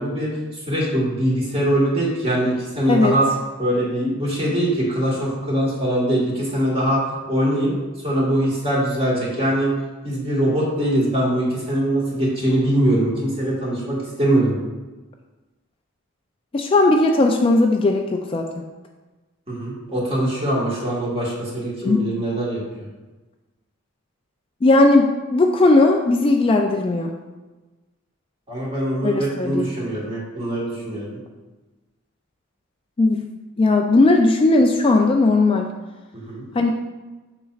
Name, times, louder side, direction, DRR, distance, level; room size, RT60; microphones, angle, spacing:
voice 1, 0.0-3.3 3.6-7.7 8.0-9.7 10.0-14.6 19.5-22.9 28.5-31.2 36.1-36.5, right 1 dB, 30° right, -5 dB, 1.7 m, -22 dB
voice 2, 16.5-18.6 21.8-22.1 24.6-27.1 29.0-29.7 33.0-33.2 33.6-35.7 36.5-36.7, left 2 dB, 25° left, 3 dB, 0.3 m, -17 dB
6.9 x 6.0 x 2.4 m, 1.2 s
head